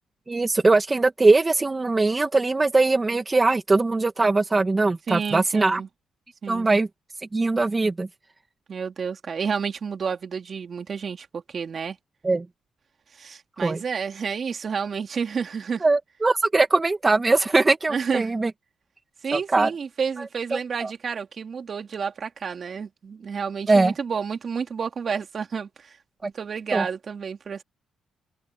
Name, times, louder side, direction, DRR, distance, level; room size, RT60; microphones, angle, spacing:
voice 1, 0.3-5.8 6.5-6.9 7.3-8.1 12.2-12.5 13.6-13.8 15.8-18.5 19.3-19.7 20.8-20.9 23.7-23.9 26.2-26.3 26.7-26.8, right 3 dB, 25° right, 2.1 m, -21 dB
voice 2, 5.1-5.9 6.4-6.7 8.7-12.0 13.1-15.8 17.9-18.3 19.2-26.0 26.2-27.6, right 6 dB, 45° right, 3.6 m, -30 dB
open air
cardioid pair, 90°, 0 cm